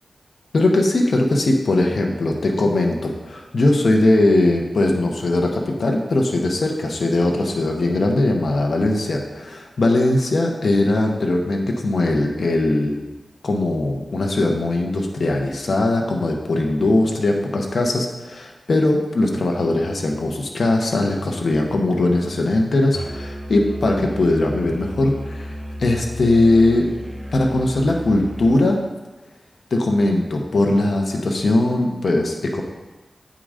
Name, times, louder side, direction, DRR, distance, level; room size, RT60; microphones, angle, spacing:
voice 1, 0.5-13.0 13.4-26.9 27.3-28.8 29.7-32.6, left 2 dB, 75° left, 1 dB, 1.0 m, -20 dB
Musical instrument, 22.9-28.6, equal, 25° right, 0.9 m, -33 dB
8.6 x 3.8 x 5.0 m, 1.1 s
cardioid pair, 55°, 0 cm